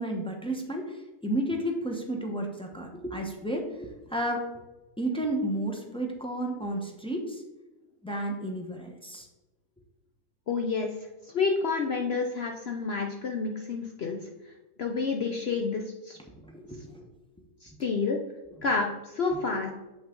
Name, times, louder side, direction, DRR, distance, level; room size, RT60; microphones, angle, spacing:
voice 1, 0.0-4.5 5.0-7.4 8.0-9.3 16.3-17.1 19.5-19.6, right 1 dB, 5° left, 1 dB, 0.6 m, -32 dB
voice 2, 10.5-10.9 11.3-14.2 14.8-16.2 17.6-18.2 18.6-19.7, left 4 dB, 60° left, 2 dB, 0.6 m, -29 dB
7.4 x 5.9 x 3.7 m, 1.0 s
omnidirectional pair, 1.7 m